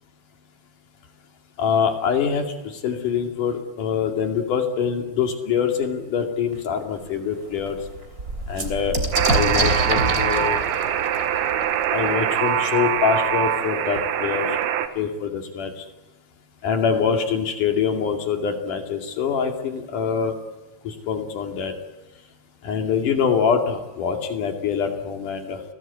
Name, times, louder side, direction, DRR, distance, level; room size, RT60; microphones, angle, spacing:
voice 1, 1.6-7.8 8.5-9.0 9.3-10.6 11.9-14.5 15.0-15.8 16.6-20.3 20.8-21.7 22.6-25.6, left 7 dB, 55° left, 4 dB, 3.7 m, -24 dB
sound 1, 6.5-6.6 7.1-7.2 7.4-13.0 14.0-14.1 14.3-14.9, right 2 dB, 25° right, 3.2 m, -27 dB
Alarm, 9.1-14.9, right 10 dB, 80° right, 3.2 m, -23 dB
29.5 x 19.5 x 8.4 m, 1.1 s
omnidirectional pair, 4.5 m